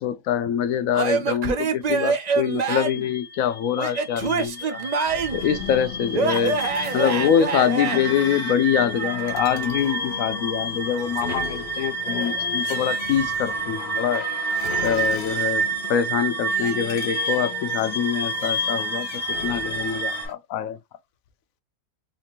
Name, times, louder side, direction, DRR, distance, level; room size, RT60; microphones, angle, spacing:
voice 1, 0.0-4.9 5.3-6.6 6.9-14.5 14.8-20.8, left 9 dB, 80° left, 1.0 m, -24 dB
Male speech man speaking / Yell / Laughter, 0.9-3.1 3.8-5.5 6.1-8.0, right 5 dB, 55° right, 0.4 m, -25 dB
sound 1, 2.4-20.3, right 3 dB, 10° right, 1.4 m, -29 dB
sound 2, 5.0-20.3, left 6 dB, 55° left, 1.0 m, -36 dB
4.3 x 2.5 x 2.9 m
omnidirectional pair, 1.4 m